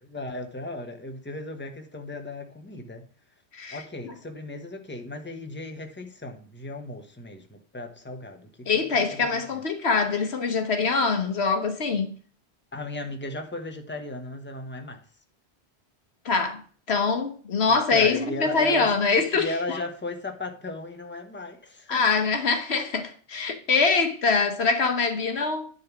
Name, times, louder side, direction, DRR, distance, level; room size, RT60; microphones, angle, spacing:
voice 1, 0.0-3.0 3.7-8.8 9.1-9.4 12.7-15.0 17.9-18.9 19.3-22.0, left 2 dB, 10° left, 1.2 m, -36 dB
voice 2, 3.5-4.1 8.7-12.1 16.2-16.6 16.9-19.8 21.9-25.7, left 4 dB, 70° left, 1.3 m, -24 dB
10.5 x 4.1 x 6.0 m
omnidirectional pair, 1.1 m